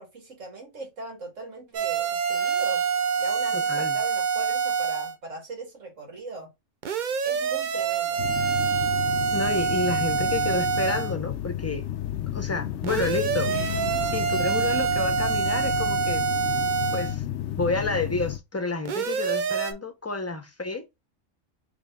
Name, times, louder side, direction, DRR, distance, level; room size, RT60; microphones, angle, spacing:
voice 1, 0.0-2.8 3.2-6.5 7.2-8.2, right 3 dB, 90° right, 2.2 m, -40 dB
sound 1, 1.7-5.1 6.8-11.1 12.8-17.2 18.9-19.7, right 6 dB, 50° right, 0.6 m, -26 dB
voice 2, 3.5-4.0 9.3-11.8 12.3-13.5 14.0-16.3 16.9-17.2 17.6-20.8, left 3 dB, 15° left, 0.7 m, -30 dB
sound 2, 8.2-18.4, left 12 dB, 75° left, 0.9 m, -32 dB
5.4 x 3.0 x 2.4 m
omnidirectional pair, 1.3 m